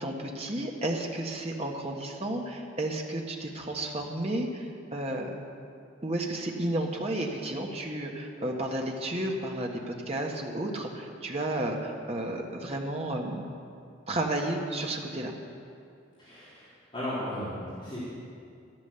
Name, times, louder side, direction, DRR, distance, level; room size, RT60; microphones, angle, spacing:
voice 1, 0.0-5.3 6.0-13.5 14.1-15.3, right 1 dB, 30° right, 1 dB, 1.4 m, -32 dB
voice 2, 16.2-16.7 16.9-18.0, left 1 dB, 25° left, -12 dB, 3.4 m, -35 dB
12.0 x 12.0 x 6.9 m, 2.4 s
head